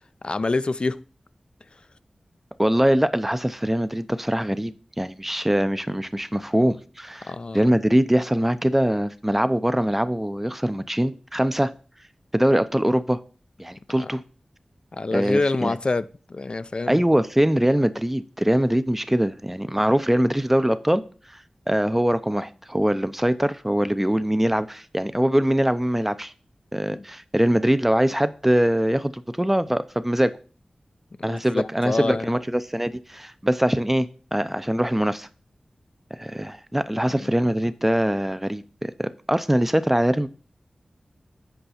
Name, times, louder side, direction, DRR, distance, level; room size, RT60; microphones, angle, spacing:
voice 1, 0.2-1.0 7.2-7.7 14.0-14.1 14.9-17.0 26.9-27.0 31.2-32.3 37.0-37.3, left 3 dB, 50° left, 0.4 m, -27 dB
voice 2, 2.6-11.7 12.3-13.2 13.6-14.2 15.1-15.8 16.9-21.0 21.7-26.3 26.7-30.3 31.2-35.3 36.1-40.3, equal, 10° right, 0.5 m, -22 dB
8.0 x 5.4 x 4.2 m
cardioid pair, 45°, 2 cm